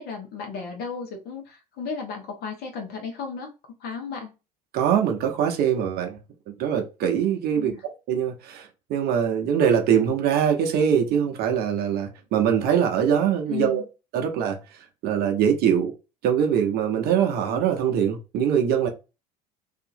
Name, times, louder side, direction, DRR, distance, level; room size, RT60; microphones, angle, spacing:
voice 1, 0.0-3.5 3.8-4.3 7.5-7.8 13.5-13.8, left 6 dB, 50° left, 1.1 m, -34 dB
voice 2, 4.7-6.2 6.6-7.7 8.1-13.8 14.1-14.6 15.0-15.9 16.2-18.9, right 8 dB, 50° right, 0.8 m, -22 dB
2.8 x 2.6 x 2.6 m
hypercardioid pair, 70°, 20 cm